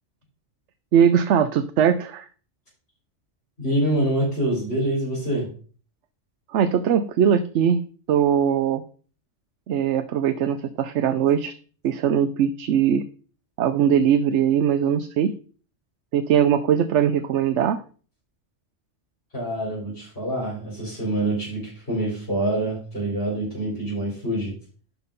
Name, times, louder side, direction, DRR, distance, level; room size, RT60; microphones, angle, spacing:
voice 1, 0.9-2.3 6.5-7.8 8.1-8.8 9.7-11.5 11.8-13.0 13.6-15.3 16.1-17.8, right 8 dB, 75° right, 10 dB, 1.0 m, -20 dB
voice 2, 3.6-5.5 19.3-24.5, right 1 dB, 55° left, -8 dB, 4.6 m, -26 dB
11.0 x 4.5 x 5.2 m, 0.41 s
omnidirectional pair, 1.2 m